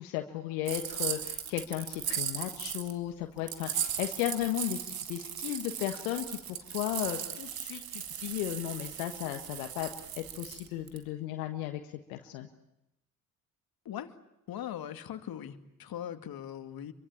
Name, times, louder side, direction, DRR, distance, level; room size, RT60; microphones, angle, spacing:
voice 1, 0.0-9.9 10.2-11.8 12.1-12.5, left 13 dB, 75° left, 5 dB, 1.6 m, -35 dB
sound 1, 0.7-2.9 3.5-11.0, right 9 dB, 55° right, 2.3 m, -37 dB
voice 2, 14.5-16.9, left 10 dB, 55° left, 8 dB, 2.4 m, -40 dB
27.5 x 23.5 x 8.6 m, 0.88 s
hypercardioid pair, 50°, 43 cm